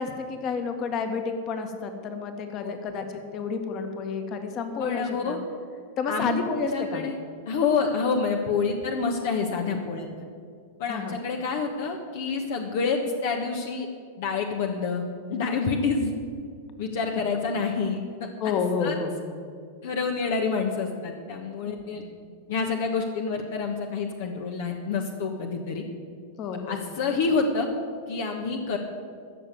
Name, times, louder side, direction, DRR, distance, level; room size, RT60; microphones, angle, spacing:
voice 1, 0.0-5.4 6.0-7.0 10.9-11.2 18.4-19.2 21.6-22.2 26.4-26.9, left 5 dB, 40° left, 6 dB, 1.8 m, -30 dB
voice 2, 4.8-5.4 6.1-6.4 6.7-7.2 7.5-10.2 10.8-13.9 14.2-15.0 15.3-16.1 16.8-18.0 18.8-18.9 19.8-22.0 22.5-25.8 26.7-27.7 28.1-28.8, left 4 dB, 60° left, 3 dB, 1.3 m, -27 dB
14.5 x 6.8 x 9.3 m, 2.2 s
hypercardioid pair, 95°, 0 cm